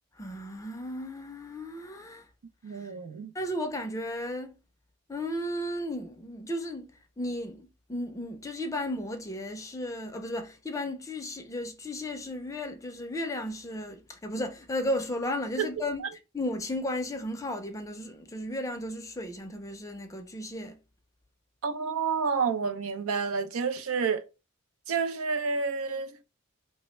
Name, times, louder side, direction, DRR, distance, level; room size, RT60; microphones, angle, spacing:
voice 1, 0.2-2.3 2.7-2.9 3.3-4.6 5.1-16.0 16.3-20.8, left 1 dB, 15° left, 0.5 m, -34 dB
voice 2, 2.6-3.3 15.6-15.7 21.6-24.2 24.9-26.1, right 5 dB, 75° right, 0.5 m, -29 dB
3.1 x 2.1 x 3.0 m
head